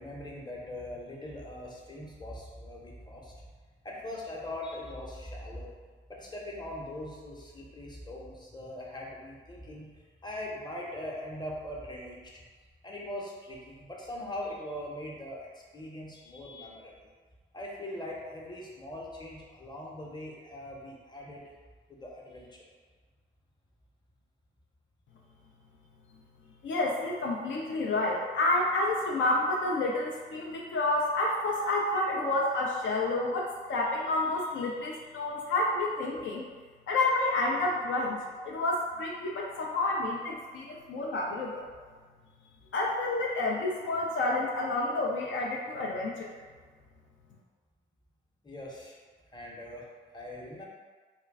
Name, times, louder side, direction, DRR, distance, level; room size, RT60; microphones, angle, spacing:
voice 1, 0.0-3.3 3.8-5.7 6.1-12.4 12.8-17.1 17.5-21.4 21.9-22.7 48.4-49.0 49.3-49.9 50.1-50.6, left 1 dB, 20° left, -3 dB, 0.8 m, -41 dB
voice 2, 26.6-36.5 36.9-41.6 42.7-46.3, left 2 dB, 70° left, -2 dB, 0.4 m, -29 dB
2.3 x 2.2 x 3.4 m, 1.5 s
supercardioid pair, 50°, 21 cm